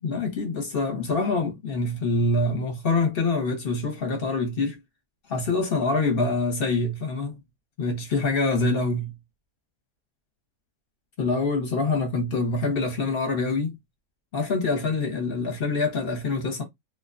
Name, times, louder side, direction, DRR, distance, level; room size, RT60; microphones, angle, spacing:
voice 1, 0.0-4.8 5.3-7.4 7.8-9.1 11.2-13.8 14.3-16.6, left 3 dB, 45° left, 0.9 m, -25 dB
2.5 x 2.2 x 2.4 m
omnidirectional pair, 1.6 m